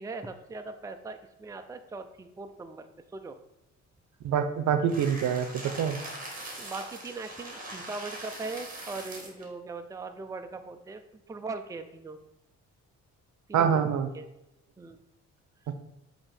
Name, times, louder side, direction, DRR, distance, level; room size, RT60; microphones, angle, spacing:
voice 1, 0.0-2.9 3.1-3.4 6.6-12.2 13.5-13.9 14.1-14.2 14.8-15.0, right 3 dB, 10° right, 7 dB, 0.4 m, -40 dB
voice 2, 4.2-5.5 5.8-6.0 13.5-14.1 15.7-15.8, right 8 dB, 70° right, 9 dB, 0.7 m, -25 dB
sound 1, 4.9-9.5, right 1 dB, 30° right, 1.7 m, -41 dB
7.5 x 2.9 x 4.3 m, 0.87 s
cardioid pair, 90°, 30 cm